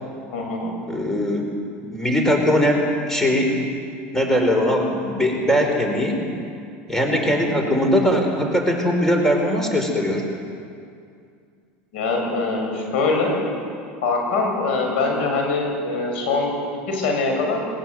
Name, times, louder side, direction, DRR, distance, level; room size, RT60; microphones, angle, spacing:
voice 1, 0.3-0.7 7.1-7.5 11.9-13.4 14.0-17.6, left 3 dB, 80° left, 1 dB, 7.4 m, -23 dB
voice 2, 0.9-1.5 1.8-3.5 4.1-6.2 6.9-10.2, equal, 5° left, 2 dB, 4.8 m, -20 dB
20.5 x 20.5 x 9.3 m, 2.3 s
supercardioid pair, 110°, 6 cm